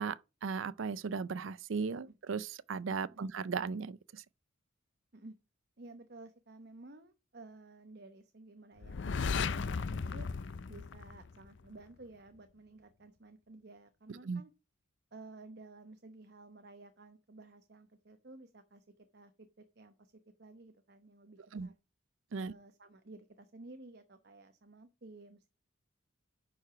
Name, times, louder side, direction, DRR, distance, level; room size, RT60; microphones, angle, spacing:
voice 1, 0.0-4.2 14.2-14.4 21.5-21.7 22.3-22.5, right 5 dB, 70° right, 0.5 m, -37 dB
voice 2, 5.8-10.3 10.7-14.5 15.1-18.8 19.1-20.1 20.4-21.7 22.4-25.5, right 2 dB, 50° right, 0.9 m, -54 dB
sound 1, 8.8-11.7, left 5 dB, 60° left, 0.5 m, -35 dB
10.5 x 4.9 x 5.8 m
head